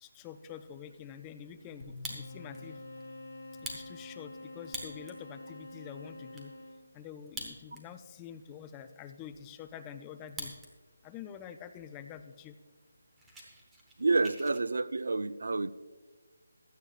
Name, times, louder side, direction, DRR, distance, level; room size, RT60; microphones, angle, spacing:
voice 1, 0.0-2.8 3.7-6.5 6.9-10.5 11.0-12.5, left 8 dB, 10° left, 9 dB, 0.3 m, -47 dB
sound 1, 1.8-5.1, left 2 dB, 70° left, 2.4 m, -52 dB
Fire, 1.8-2.6 3.0-3.1 3.5-5.2 5.7-5.8 6.0-6.5 7.2-8.0 8.3-8.4 9.0-10.7 11.0-11.5 12.0-12.1 12.4-12.6 12.9-14.6, right 1 dB, 5° right, 0.9 m, -45 dB
sound 2, 2.1-7.0, left 2 dB, 50° left, 2.0 m, -48 dB
voice 2, 14.0-15.7, right 3 dB, 70° right, 15 dB, 0.4 m, -29 dB
16.0 x 11.5 x 2.4 m, 1.4 s
figure-of-eight pair, 175°, 0 cm